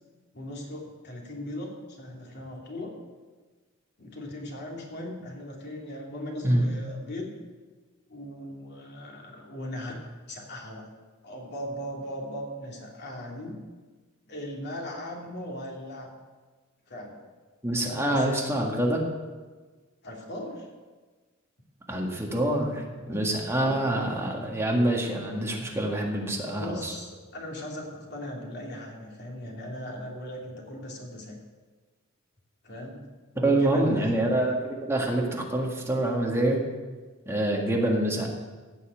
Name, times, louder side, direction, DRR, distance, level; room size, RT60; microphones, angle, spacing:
voice 1, 0.3-2.9 4.0-7.3 8.1-10.8 11.2-13.6 14.3-16.1 16.9-17.2 17.8-18.6 20.0-20.7 23.6-23.9 26.5-31.4 32.6-33.0 33.3-34.1, left 1 dB, 50° left, -1 dB, 2.8 m, -38 dB
voice 2, 17.6-19.0 21.9-26.9 33.4-36.6 37.3-38.3, right 1 dB, 10° right, -1 dB, 1.8 m, -26 dB
15.5 x 5.7 x 8.6 m, 1.4 s
head